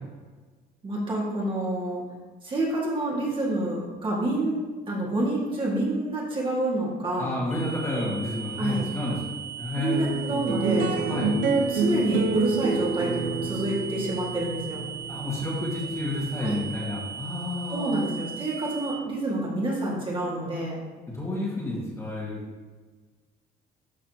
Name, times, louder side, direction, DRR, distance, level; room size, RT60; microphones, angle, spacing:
voice 1, 0.8-2.0 2.4-7.4 8.6-8.9 9.8-11.4 11.7-14.8 16.4-16.6 17.7-20.8, right 1 dB, 30° right, -4 dB, 2.2 m, -28 dB
voice 2, 7.2-10.1 11.1-11.3 15.1-18.0 21.1-22.4, left 1 dB, 15° left, -5 dB, 2.0 m, -31 dB
sound 1, 7.5-18.9, right 8 dB, 45° left, 1.4 m, -38 dB
sound 2, 9.9-16.6, right 4 dB, 80° right, 1.0 m, -27 dB
12.0 x 4.2 x 3.0 m, 1.3 s
cardioid pair, 110°, 17 cm